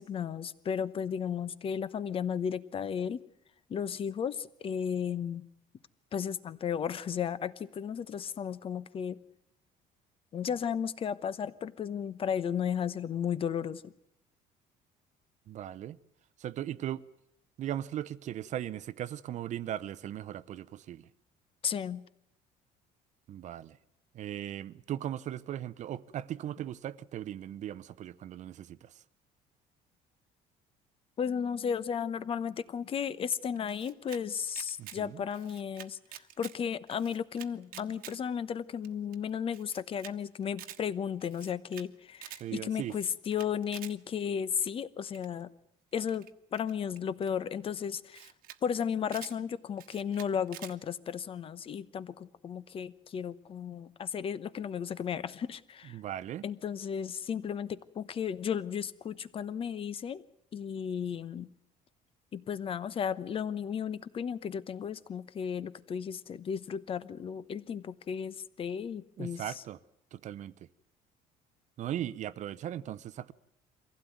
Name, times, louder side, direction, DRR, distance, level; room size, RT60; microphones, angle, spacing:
voice 1, 0.0-3.2 3.7-5.5 6.1-9.2 10.3-13.9 21.6-22.0 31.2-45.5 45.9-48.3 48.6-56.0 56.4-60.2 60.5-61.5 62.3-69.4, left 7 dB, 35° left, 1.0 m, -34 dB
voice 2, 15.5-16.0 16.4-17.0 17.6-21.1 23.3-23.8 24.1-29.0 34.8-35.2 42.4-43.0 55.8-56.4 69.2-69.8 70.1-70.7 71.8-73.3, right 11 dB, 50° right, 0.8 m, -38 dB
Camera, 33.3-34.2 34.5-35.0 35.3-36.6 36.9-38.2 38.5-38.6 38.8-38.9 39.1-39.2 39.5-40.1 40.4-40.8 41.2-41.9 42.1-42.4 42.9-43.9 45.1-45.4 46.0-47.3 47.8-47.9 48.1-48.6 48.9-49.4 49.8-50.7, right 13 dB, 70° right, 1.3 m, -48 dB
24.0 x 16.0 x 9.4 m
cardioid pair, 135°, 16 cm